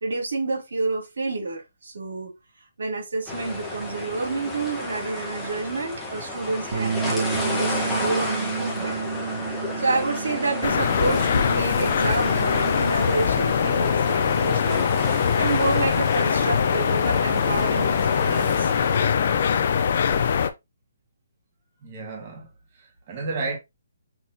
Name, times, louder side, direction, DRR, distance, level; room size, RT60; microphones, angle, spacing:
voice 1, 0.0-2.3 2.8-9.0 9.8-14.9 15.4-18.7, right 3 dB, 80° right, 2.7 m, -29 dB
sound 1, 3.3-19.0, left 2 dB, ahead, 1.2 m, -32 dB
Bass guitar, 6.7-13.0, right 6 dB, 55° right, 0.7 m, -31 dB
sound 2, 10.6-20.5, left 7 dB, 45° left, 0.5 m, -22 dB
voice 2, 21.8-22.5 22.7-23.6, right 3 dB, 30° right, 1.5 m, -32 dB
6.1 x 3.0 x 2.8 m
hypercardioid pair, 170°, 0 cm